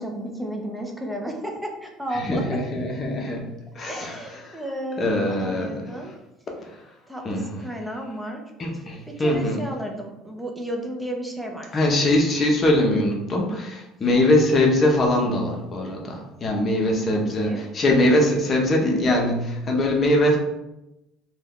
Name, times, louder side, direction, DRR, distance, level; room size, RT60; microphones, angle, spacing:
voice 1, 0.0-2.5 3.9-6.1 7.1-8.4 9.1-11.8 17.1-17.7, equal, 5° right, 1 dB, 0.7 m, -33 dB
voice 2, 2.1-3.5 3.7-4.6 5.0-6.0 7.2-7.6 8.6-9.6 11.7-20.4, left 1 dB, 35° left, 0 dB, 0.8 m, -22 dB
2.6 x 2.3 x 3.6 m, 0.92 s
supercardioid pair, 85°, 0 cm